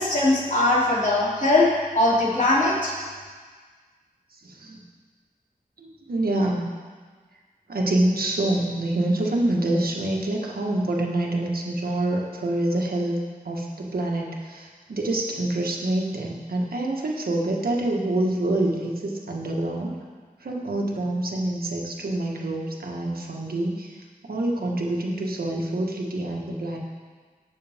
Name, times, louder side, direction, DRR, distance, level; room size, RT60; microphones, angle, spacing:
voice 1, 0.0-1.7 1.9-2.9, left 2 dB, 55° left, -6 dB, 3.1 m, -20 dB
voice 2, 4.3-4.8 5.8-6.7 7.7-13.2 13.4-20.0 20.4-26.8, right 1 dB, 85° right, -1 dB, 1.5 m, -26 dB
18.0 x 6.6 x 3.6 m, 1.5 s
wide cardioid pair, 80°, 15 cm